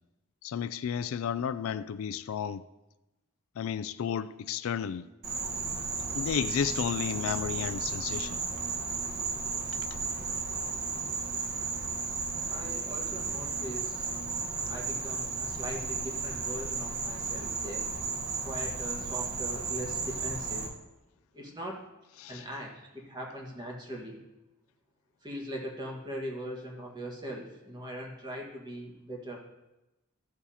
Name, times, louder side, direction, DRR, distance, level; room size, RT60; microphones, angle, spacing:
voice 1, 0.4-2.6 3.6-5.1 6.1-8.4 22.2-22.5, left 8 dB, 70° left, 0.3 m, -32 dB
Insect, 5.2-20.7, right 4 dB, 45° right, 1.2 m, -34 dB
voice 2, 12.5-14.0 14.7-17.9 18.4-20.7 21.3-21.8 22.3-24.2 25.2-29.4, equal, 20° right, 1.5 m, -40 dB
14.5 x 7.0 x 2.8 m
head